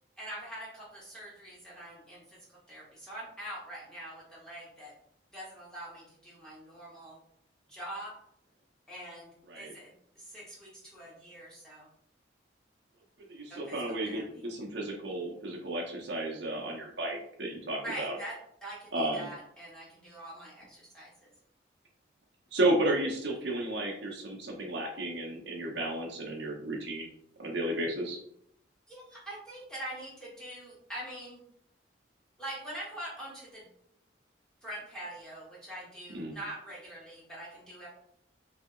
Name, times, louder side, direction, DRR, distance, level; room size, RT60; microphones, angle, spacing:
voice 1, 0.2-4.9 5.3-7.2 7.7-8.2 8.9-9.9 10.1-11.9 13.5-14.4 17.8-21.3 28.9-31.4 32.4-33.7 34.6-37.9, right 1 dB, 5° left, -7 dB, 1.3 m, -44 dB
voice 2, 13.3-18.2 18.9-19.3 22.5-27.1 27.4-28.2 36.1-36.3, right 1 dB, 65° right, 0 dB, 0.8 m, -33 dB
3.3 x 2.7 x 3.7 m, 0.71 s
head